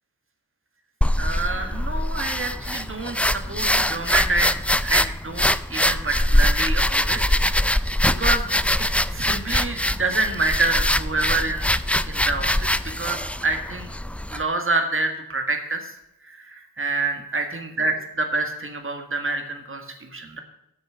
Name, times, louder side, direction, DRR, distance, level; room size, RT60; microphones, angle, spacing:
sound 1, 1.0-14.4, left 1 dB, 5° left, 0.3 m, -23 dB
voice 1, 1.2-7.2 7.6-7.7 8.0-8.5 8.8-11.7 12.1-13.9 14.3-15.9 16.2-20.4, right 3 dB, 35° right, 4 dB, 1.8 m, -27 dB
8.9 x 6.5 x 8.0 m, 0.83 s
wide cardioid pair, 80°, 37 cm